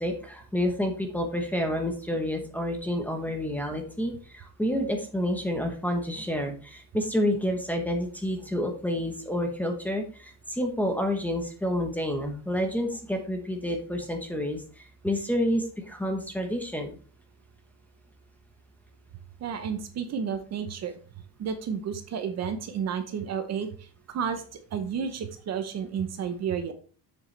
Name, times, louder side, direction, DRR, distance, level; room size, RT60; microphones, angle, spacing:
voice 1, 0.0-17.0, equal, 5° left, 4 dB, 1.0 m, -29 dB
voice 2, 19.4-21.0 21.4-23.7 24.1-24.4 24.7-26.7, right 7 dB, 40° right, 8 dB, 0.8 m, -31 dB
7.4 x 7.1 x 3.3 m, 0.39 s
cardioid pair, 180°, 39 cm